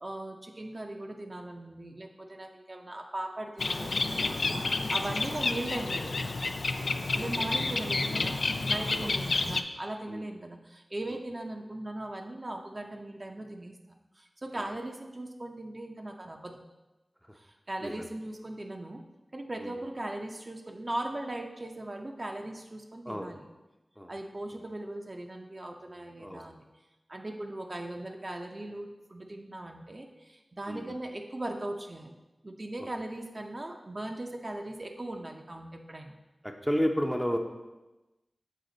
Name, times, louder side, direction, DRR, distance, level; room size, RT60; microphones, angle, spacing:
voice 1, 0.0-6.3 7.1-13.7 14.2-16.6 17.3-19.0 19.3-23.4 24.1-26.6 27.1-32.1 32.4-36.2, right 1 dB, 45° right, 3 dB, 0.6 m, -39 dB
Bird, 3.6-9.6, left 3 dB, 80° left, 0.3 m, -30 dB
voice 2, 30.7-31.0 32.8-32.9 36.4-37.4, equal, ahead, 3 dB, 0.6 m, -32 dB
6.6 x 4.0 x 3.9 m, 1.1 s
wide cardioid pair, 60°, 0 cm